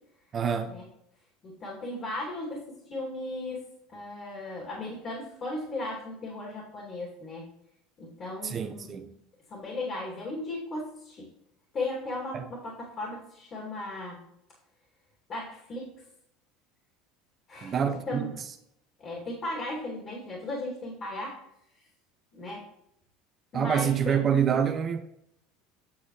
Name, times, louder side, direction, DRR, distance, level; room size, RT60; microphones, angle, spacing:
voice 1, 0.3-0.8 8.4-9.1 12.3-12.5 17.6-18.3 23.5-25.0, right 7 dB, 40° right, 0.8 m, -27 dB
voice 2, 1.4-3.6 3.9-7.5 8.0-8.9 9.5-11.3 11.7-14.2 15.3-15.9 17.5-17.8 18.1-18.3 19.0-21.4 22.3-22.6 23.5-24.2, left 2 dB, 40° left, 2.9 m, -36 dB
8.8 x 6.3 x 3.2 m
hypercardioid pair, 85°, 0 cm